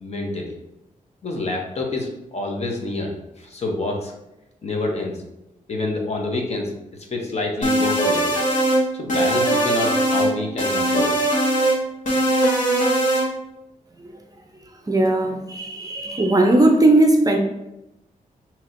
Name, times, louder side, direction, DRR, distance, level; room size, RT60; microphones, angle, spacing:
voice 1, 0.0-0.5 1.2-4.1 4.6-5.2 5.7-6.7 7.1-8.4 9.0-11.2, left 2 dB, 50° left, 1 dB, 0.8 m, -27 dB
sound 1, 7.6-8.8 9.1-10.3 10.6-11.8 12.1-13.3, right 1 dB, 65° left, 1.2 m, -20 dB
voice 2, 14.9-17.4, right 2 dB, 25° right, 3 dB, 0.5 m, -17 dB
5.9 x 2.9 x 2.5 m, 0.92 s
wide cardioid pair, 130°, 14 cm